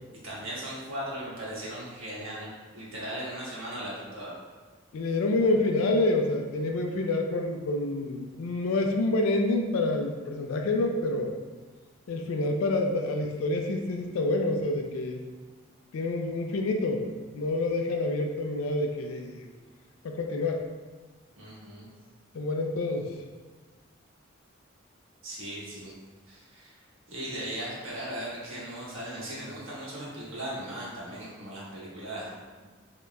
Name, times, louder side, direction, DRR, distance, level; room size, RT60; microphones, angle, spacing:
voice 1, 0.2-2.5 2.7-4.4 21.4-21.9 25.2-25.9 26.3-26.7 27.1-32.7, right 1 dB, 75° right, -7 dB, 1.3 m, -38 dB
voice 2, 4.9-11.4 12.1-15.2 15.9-17.0 17.3-19.5 20.0-20.6 22.3-23.1, left 2 dB, 85° left, 3 dB, 0.4 m, -27 dB
5.2 x 2.8 x 2.3 m, 1.4 s
head